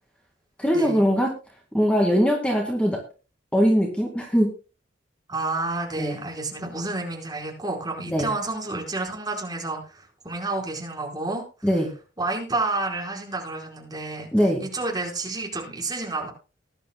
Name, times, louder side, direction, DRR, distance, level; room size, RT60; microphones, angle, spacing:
voice 1, 0.6-1.3 1.7-3.0 3.5-4.5 6.0-6.2 8.1-8.3 11.6-11.9 14.3-14.6, equal, 5° left, 0 dB, 2.1 m, -21 dB
voice 2, 5.3-11.7 12.2-14.3 14.6-16.3, right 2 dB, 20° right, -1 dB, 4.6 m, -30 dB
20.0 x 11.5 x 2.2 m, 0.33 s
head